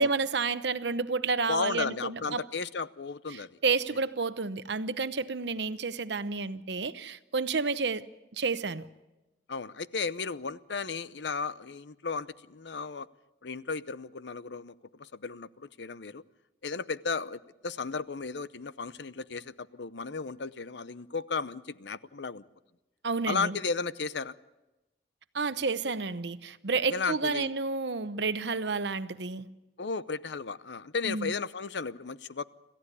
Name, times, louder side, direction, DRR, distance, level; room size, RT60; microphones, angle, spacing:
voice 1, 0.0-2.4 3.6-8.1 8.3-8.8 23.0-23.6 25.3-29.5 31.0-31.3, right 4 dB, 75° right, 0.9 m, -30 dB
voice 2, 1.5-3.6 9.5-13.1 13.4-16.2 16.6-22.5 23.3-24.4 26.9-27.5 29.8-32.4, left 4 dB, 75° left, 0.7 m, -34 dB
27.5 x 15.0 x 8.3 m
head